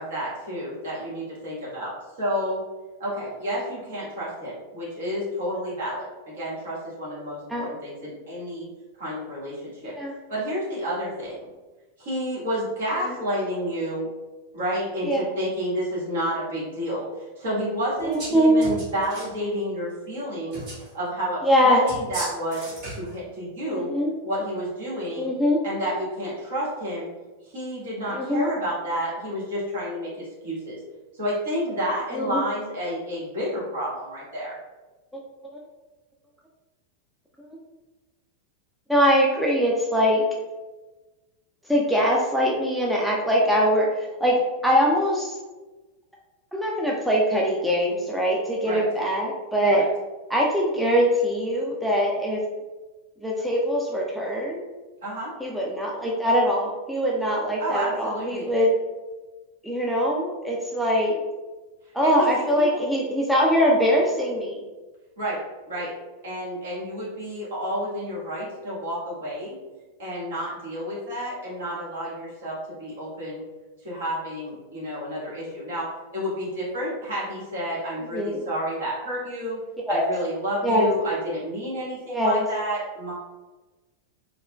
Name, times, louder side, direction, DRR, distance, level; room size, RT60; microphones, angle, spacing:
voice 1, 0.0-1.9 2.2-2.6 3.0-8.7 9.0-9.9 10.3-11.4 12.0-14.1 14.5-17.1 17.4-20.6 20.9-22.6 22.9-23.9 24.2-25.3 25.6-27.1 27.5-30.8 31.2-34.6 48.6-48.8 49.7-49.8 55.0-55.3 57.6-58.5 62.0-62.8 65.2-65.4 65.7-65.9 66.2-69.6 70.0-73.4 73.8-79.6 79.9-83.1, equal, 60° right, -7 dB, 1.4 m, -30 dB
voice 2, 18.0-18.7 21.4-21.9 23.7-24.1 25.2-25.6 28.1-28.6 32.1-32.4 38.9-40.2 41.7-45.4 46.5-49.9 50.3-52.4 53.2-54.6 55.4-58.7 59.6-61.2 61.9-64.6 78.1-78.4 79.9-80.0 80.6-80.9 82.1-82.5, equal, ahead, -3 dB, 0.4 m, -22 dB
sound 1, 18.0-18.3 18.6-19.3 20.5-20.9 21.9-23.1, right 2 dB, 45° right, 1.1 m, -36 dB
4.2 x 2.1 x 2.2 m, 1.2 s
figure-of-eight pair, 90°, 0 cm